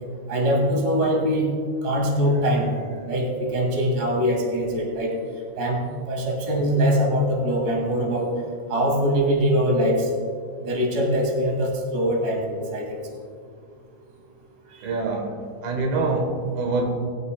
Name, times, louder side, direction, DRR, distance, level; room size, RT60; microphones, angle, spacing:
voice 1, 0.3-1.5 1.8-2.8 3.1-5.1 5.6-5.8 6.1-8.3 8.7-10.1 10.6-13.0 14.8-14.9, equal, 30° right, -1 dB, 2.0 m, -22 dB
voice 2, 14.8-15.4 15.6-16.9, right 3 dB, 75° right, 2 dB, 3.1 m, -25 dB
20.5 x 8.4 x 2.3 m, 2.1 s
omnidirectional pair, 4.4 m